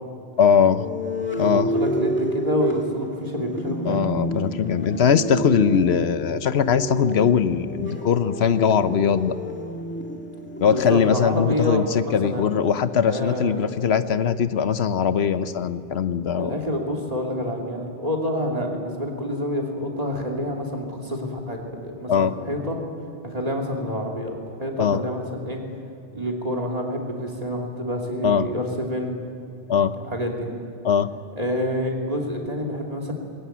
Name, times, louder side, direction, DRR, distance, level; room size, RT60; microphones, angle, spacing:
voice 1, 0.4-0.9 1.4-1.7 3.9-9.4 10.6-16.5 22.1-22.3 24.8-25.0 28.2-28.5 29.7-29.9 30.8-31.1, left 7 dB, 80° left, 12 dB, 1.1 m, -21 dB
sound 1, 0.6-14.4, right 1 dB, 10° left, 1.8 m, -31 dB
voice 2, 1.4-4.1 10.7-12.6 13.1-13.6 16.4-22.8 23.2-25.6 26.1-29.1 30.1-30.5 31.4-33.1, equal, 35° right, 0 dB, 2.9 m, -28 dB
20.5 x 17.5 x 9.3 m, 2.5 s
omnidirectional pair, 1.1 m